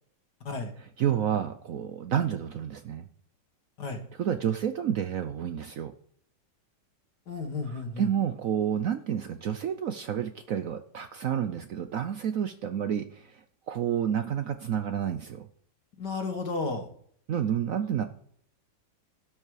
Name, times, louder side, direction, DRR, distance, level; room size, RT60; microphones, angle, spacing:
voice 1, 1.0-3.0 4.2-5.9 8.0-15.5 17.3-18.0, right 9 dB, 60° right, 9 dB, 0.9 m, -29 dB
voice 2, 7.3-8.1 16.0-16.9, left 3 dB, 65° left, 5 dB, 2.2 m, -33 dB
12.5 x 7.7 x 4.8 m, 0.63 s
omnidirectional pair, 1.9 m